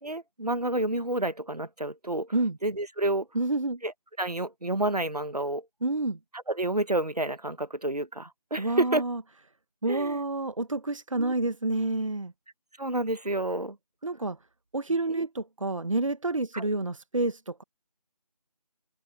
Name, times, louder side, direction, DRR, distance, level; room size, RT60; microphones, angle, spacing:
voice 1, 0.0-2.3 2.6-3.3 3.8-3.9 4.2-5.7 6.3-9.0 9.9-10.2 11.2-11.3 12.8-13.8 15.1-15.3 16.5-16.7, right 2 dB, 75° right, 1.8 m, -29 dB
voice 2, 3.3-3.8 5.8-6.2 8.6-9.2 9.8-12.3 14.0-14.4 14.7-17.6, right 2 dB, 50° right, 1.2 m, -29 dB
figure-of-eight pair, 165°, 20 cm